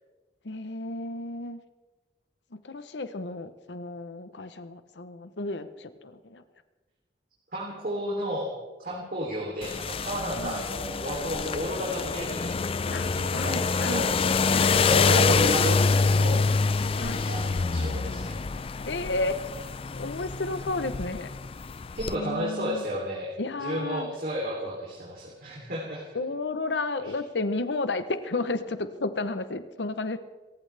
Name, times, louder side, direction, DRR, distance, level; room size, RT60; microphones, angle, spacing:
voice 1, 0.4-1.6 2.5-6.4 10.4-10.6 12.9-14.1 14.5-14.8 15.8-15.9 17.0-17.3 18.9-19.4 19.9-21.3 22.1-22.8 23.4-24.1 26.1-30.2, left 2 dB, 80° left, 11 dB, 0.9 m, -32 dB
voice 2, 7.5-8.5 8.8-14.1 14.7-16.5 16.7-18.4 22.0-23.3 23.6-26.1, equal, 50° right, -3 dB, 3.2 m, -32 dB
sound 1, 9.6-22.2, left 4 dB, 30° left, 0.4 m, -26 dB
28.0 x 15.0 x 3.4 m, 1.2 s
head